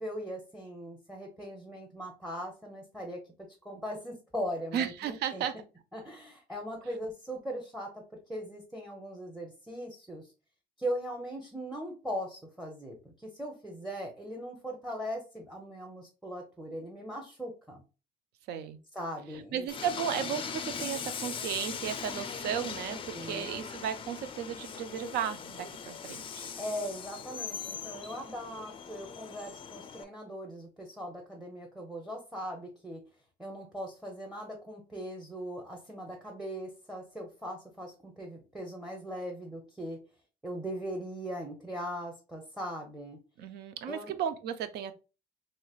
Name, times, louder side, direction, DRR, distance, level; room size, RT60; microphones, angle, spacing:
voice 1, 0.0-3.2 3.6-5.4 5.9-10.3 10.8-17.8 18.9-19.7 22.9-23.7 26.6-33.0 33.4-40.0 40.4-43.2 43.9-44.1, equal, 5° right, 0.7 m, -39 dB
voice 2, 4.7-5.5 18.5-18.8 19.5-26.5 43.4-44.9, right 9 dB, 75° right, 0.5 m, -34 dB
Train, 19.7-30.0, left 6 dB, 30° left, 0.4 m, -40 dB
3.1 x 2.9 x 2.3 m
cardioid pair, 110°, 17 cm